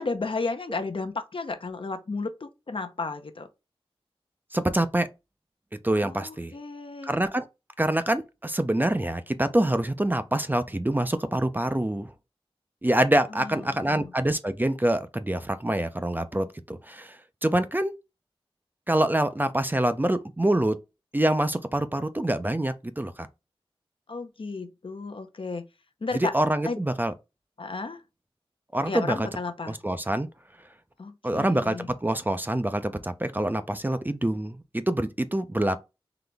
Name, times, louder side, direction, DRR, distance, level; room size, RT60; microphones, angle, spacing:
voice 1, 0.0-3.5 6.0-7.1 13.3-14.1 24.1-25.7 26.0-26.3 26.7-26.8 27.6-28.0 28.9-29.8 31.0-31.9, left 3 dB, 60° left, 0.6 m, -33 dB
voice 2, 4.5-5.1 5.8-6.5 7.0-7.4 7.8-12.1 12.8-17.2 17.4-17.9 18.9-20.8 21.1-23.3 26.1-27.1 28.7-29.3 29.7-30.3 31.2-35.8, right 1 dB, 20° right, 0.5 m, -25 dB
4.0 x 2.9 x 3.4 m
wide cardioid pair, 70°, 10 cm